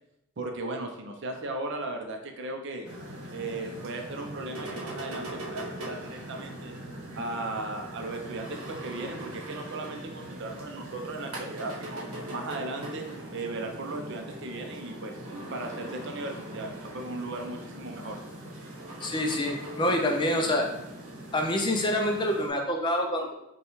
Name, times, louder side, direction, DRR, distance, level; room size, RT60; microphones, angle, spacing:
voice 1, 0.4-2.9 3.3-6.8 7.1-12.0 12.3-13.1 13.3-15.1 15.5-18.2, right 2 dB, 55° right, 3 dB, 0.5 m, -36 dB
sound 1, 2.8-22.5, right 1 dB, 80° right, 0.9 m, -41 dB
voice 2, 19.0-20.6 21.3-23.3, left 1 dB, 20° left, 2 dB, 0.4 m, -26 dB
5.4 x 2.3 x 3.0 m, 0.87 s
head